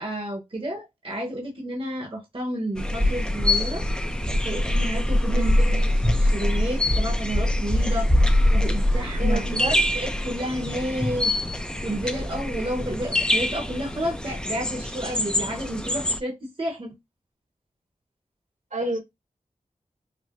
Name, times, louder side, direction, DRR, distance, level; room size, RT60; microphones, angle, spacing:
voice 1, 0.0-3.9 4.4-5.8 6.1-9.4 9.9-11.3 11.8-16.9, right 1 dB, 40° right, 1.0 m, -31 dB
sound 1, 2.8-16.2, left 1 dB, 5° left, 0.5 m, -24 dB
voice 2, 5.3-5.8 6.6-6.7 9.2-9.9 18.7-19.0, right 2 dB, 65° right, 1.3 m, -30 dB
4.7 x 2.1 x 2.5 m
wide cardioid pair, 55°, 14 cm